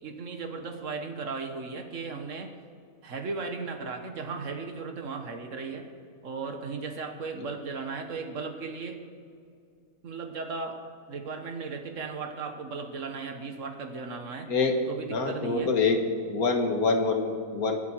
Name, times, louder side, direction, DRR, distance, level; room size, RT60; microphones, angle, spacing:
voice 1, 0.0-2.5 3.0-5.9 6.2-9.0 10.0-10.8 11.1-14.5 14.9-15.7, right 4 dB, 60° right, 5 dB, 1.7 m, -36 dB
voice 2, 15.1-16.0 16.3-17.8, left 4 dB, 90° left, 4 dB, 2.0 m, -25 dB
24.0 x 8.3 x 4.6 m, 2.3 s
omnidirectional pair, 1.5 m